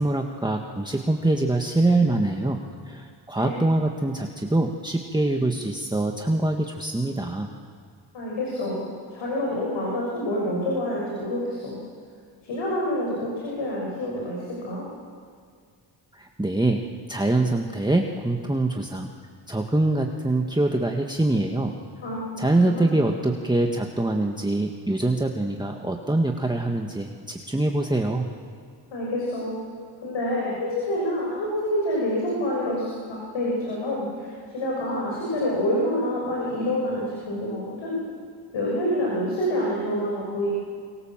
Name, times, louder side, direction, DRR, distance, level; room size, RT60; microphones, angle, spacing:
voice 1, 0.0-7.5 16.1-16.8 17.1-19.1 19.5-21.8 22.4-28.3, right 2 dB, 10° right, 2 dB, 1.8 m, -24 dB
voice 2, 8.1-11.8 12.4-14.8 22.0-22.9 28.9-29.6 30.0-34.3 34.5-38.0 38.5-40.6, left 1 dB, 80° left, -4 dB, 6.6 m, -27 dB
25.5 x 25.0 x 7.5 m, 2.1 s
cardioid pair, 65°, 45 cm